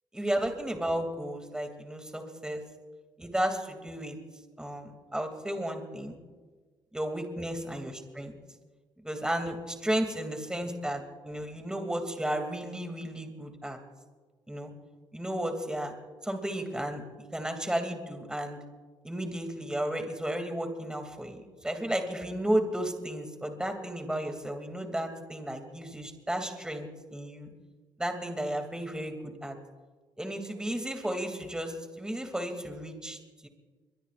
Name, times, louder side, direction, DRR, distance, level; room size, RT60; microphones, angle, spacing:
voice 1, 0.1-2.6 3.2-4.2 4.6-6.2 6.9-8.3 9.0-13.8 14.5-14.7 15.1-15.9 16.2-18.6 19.0-27.5 28.0-29.6 30.2-33.5, right 1 dB, 5° right, 5 dB, 2.7 m, -33 dB
22.5 x 22.0 x 2.5 m, 1.4 s
supercardioid pair, 65°, 10 cm